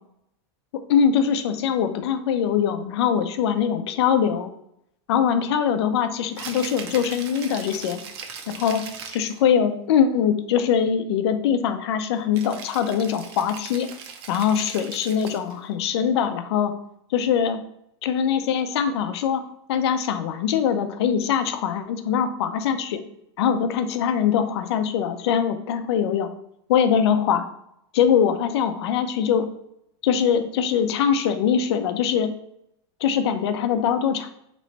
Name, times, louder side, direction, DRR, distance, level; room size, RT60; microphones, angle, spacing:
voice 1, 0.9-4.5 5.1-8.0 8.5-8.8 9.1-13.9 14.3-16.7 17.1-17.6 18.0-19.4 19.7-23.0 23.4-26.3 26.7-27.5 27.9-29.5 30.0-32.3 33.0-34.3, left 8 dB, 70° left, 9 dB, 0.5 m, -22 dB
Rattle (instrument), 6.2-9.4 12.3-15.6, right 6 dB, 60° right, 0.6 m, -39 dB
3.2 x 3.0 x 3.9 m, 0.76 s
supercardioid pair, 155°, 15 cm